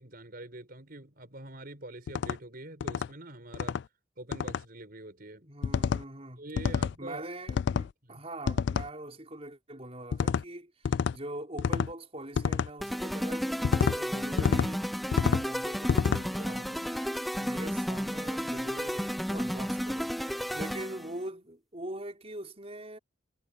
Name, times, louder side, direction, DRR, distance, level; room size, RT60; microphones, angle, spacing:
voice 1, 0.0-3.8 4.2-5.5 6.4-7.3 8.0-8.2 16.3-16.5 20.5-20.7, right 1 dB, 50° right, 5.2 m, -45 dB
sound 1, 2.1-2.4 2.8-3.1 3.5-3.8 4.3-4.6 5.6-6.0 6.6-6.9 7.5-7.9 8.5-8.9 10.1-10.4 10.8-11.2 11.6-11.9 12.3-12.7 13.6-14.0 14.4-14.7 15.1-15.4 15.9-16.2, left 6 dB, 60° left, 0.3 m, -28 dB
voice 2, 5.4-6.4 7.0-23.0, right 1 dB, 30° right, 5.2 m, -43 dB
sound 2, 12.8-21.1, equal, ahead, 0.5 m, -33 dB
head